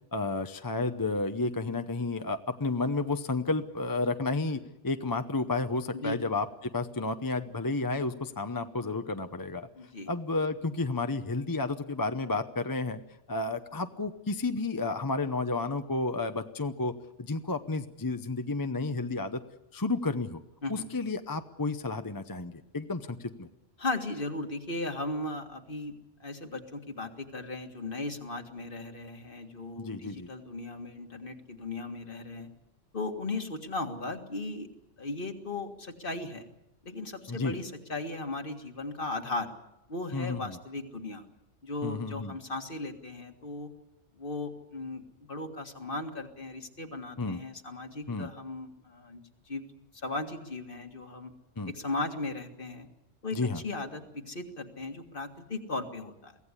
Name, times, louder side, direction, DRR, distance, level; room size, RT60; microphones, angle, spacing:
voice 1, 0.1-9.7 10.1-13.0 13.3-16.9 17.2-19.4 19.7-20.4 20.7-23.5 29.8-30.3 37.3-37.5 40.1-40.6 41.8-42.4 47.2-47.4 48.1-48.3 51.6-51.7 53.3-53.6, left 3 dB, 20° left, 8 dB, 0.7 m, -31 dB
voice 2, 9.8-10.1 20.6-20.9 23.8-25.9 26.2-32.5 32.9-34.7 35.0-36.5 36.8-39.5 39.9-41.3 41.6-43.7 44.1-49.2 49.5-49.7 49.9-51.3 51.7-52.9 53.2-56.4, left 2 dB, 50° left, 5 dB, 2.1 m, -37 dB
23.5 x 16.5 x 9.8 m, 0.88 s
omnidirectional pair, 1.2 m